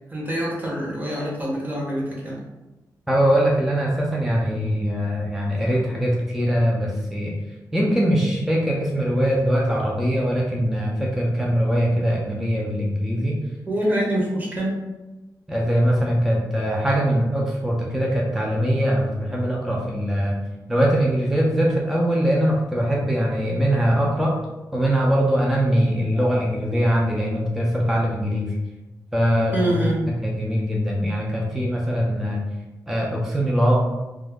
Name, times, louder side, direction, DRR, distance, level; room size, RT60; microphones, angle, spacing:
voice 1, 0.1-2.4 13.7-14.8 29.5-30.0, right 1 dB, 20° right, -3 dB, 0.8 m, -25 dB
voice 2, 3.1-7.3 7.7-13.4 15.5-20.4 20.7-24.4 24.7-28.6 29.1-29.7 30.2-32.4 32.9-33.8, equal, 5° right, -3 dB, 0.4 m, -22 dB
2.3 x 2.0 x 3.4 m, 1.1 s
wide cardioid pair, 105°, 7 cm